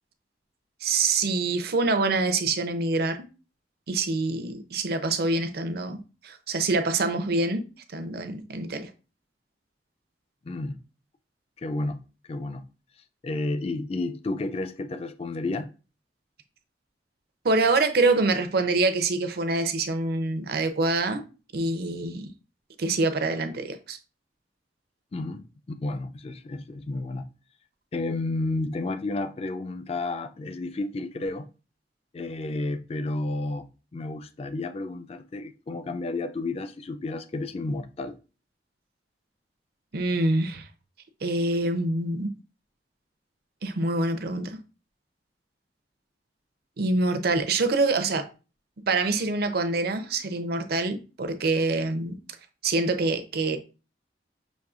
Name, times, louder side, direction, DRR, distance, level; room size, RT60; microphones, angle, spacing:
voice 1, 0.8-3.2 3.9-7.6 7.9-8.9 17.4-21.2 21.5-22.3 22.8-24.0 39.9-40.7 41.2-42.3 43.6-44.6 46.8-48.2 48.9-52.2 52.6-53.6, right 3 dB, 60° right, 0.6 m, -25 dB
voice 2, 10.4-10.8 11.6-12.0 12.3-12.7 13.2-15.7 25.1-27.3 27.9-31.5 32.1-38.2, left 2 dB, 35° left, 0.4 m, -31 dB
6.3 x 3.0 x 2.4 m
head